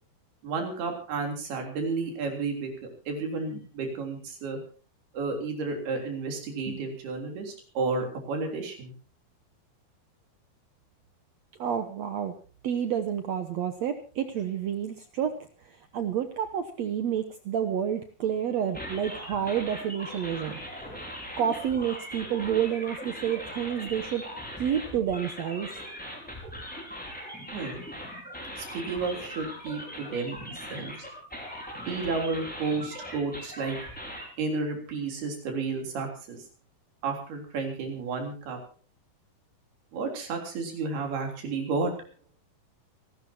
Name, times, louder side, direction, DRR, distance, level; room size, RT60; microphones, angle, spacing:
voice 1, 0.4-2.7 3.1-4.6 5.1-8.9 27.5-27.8 28.6-30.4 30.7-30.9 31.9-33.8 34.4-36.4 37.0-38.6 39.9-41.9, right 4 dB, 85° right, 3 dB, 5.5 m, -32 dB
voice 2, 11.6-12.3 12.6-15.4 15.9-20.6 21.4-24.2 24.6-25.8, right 9 dB, 65° right, 8 dB, 1.7 m, -29 dB
sound 1, 18.7-34.3, equal, ahead, 4.9 m, -40 dB
28.0 x 12.5 x 2.9 m, 0.38 s
omnidirectional pair, 4.4 m